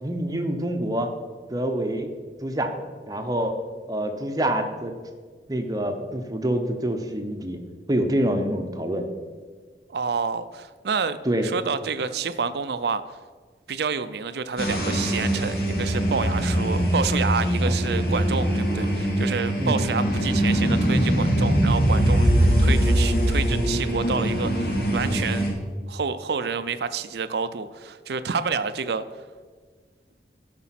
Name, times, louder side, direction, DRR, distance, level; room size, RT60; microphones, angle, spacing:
voice 1, 0.0-1.1 1.5-2.1 2.4-2.7 3.1-3.6 3.9-4.9 5.5-7.6 7.9-9.1 11.2-11.5 17.6-17.8 19.6-19.8, right 1 dB, 20° right, 5 dB, 0.8 m, -26 dB
voice 2, 9.9-11.2 11.4-13.0 13.7-25.5 25.9-29.0, right 5 dB, 70° right, 12 dB, 0.5 m, -28 dB
sound 1, 14.6-25.5, equal, 55° left, 2.2 m, -22 dB
12.5 x 5.2 x 5.8 m, 1.5 s
head